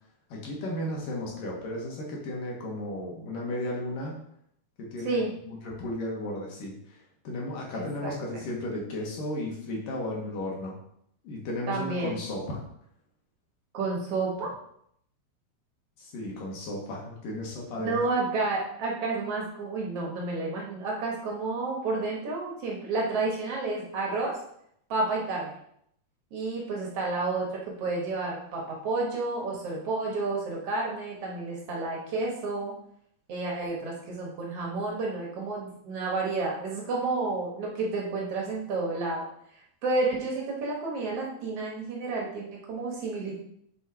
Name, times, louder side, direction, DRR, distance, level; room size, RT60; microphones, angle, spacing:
voice 1, 0.3-4.1 4.8-10.7 11.2-12.6 16.0-18.0, left 1 dB, 65° left, -2 dB, 2.6 m, -34 dB
voice 2, 7.7-8.1 11.7-12.1 13.7-14.5 17.8-24.4 24.9-25.5 26.3-32.7 33.3-39.2 39.8-43.4, right 3 dB, 70° right, -2 dB, 1.4 m, -30 dB
8.5 x 3.7 x 4.8 m, 0.70 s
omnidirectional pair, 4.8 m